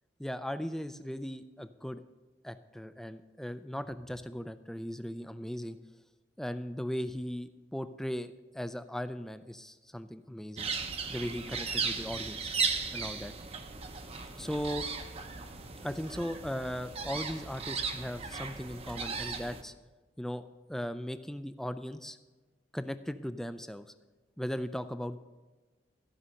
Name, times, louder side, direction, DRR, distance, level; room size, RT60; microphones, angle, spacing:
voice 1, 0.2-2.0 2.4-5.8 6.4-10.7 11.1-12.5 12.9-13.3 14.4-14.9 15.8-19.7 20.2-20.4 20.7-22.2 22.7-23.9 24.4-25.2, equal, ahead, 11 dB, 0.3 m, -38 dB
sound 1, 10.6-19.6, right 5 dB, 30° right, 0.7 m, -36 dB
14.0 x 5.5 x 6.4 m, 1.2 s
head